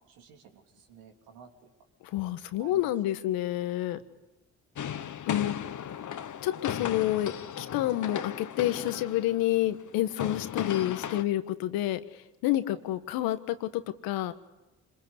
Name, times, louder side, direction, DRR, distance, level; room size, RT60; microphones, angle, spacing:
voice 1, 0.1-1.7 2.6-2.9 12.7-12.8, right 7 dB, 80° right, 3 dB, 3.6 m, -52 dB
voice 2, 2.0-4.0 5.3-5.5 6.4-14.3, left 14 dB, 80° left, 11 dB, 1.4 m, -29 dB
sound 1, 4.8-11.2, left 9 dB, 55° left, 1.5 m, -36 dB
26.0 x 21.5 x 8.2 m, 1.0 s
hypercardioid pair, 50°, 36 cm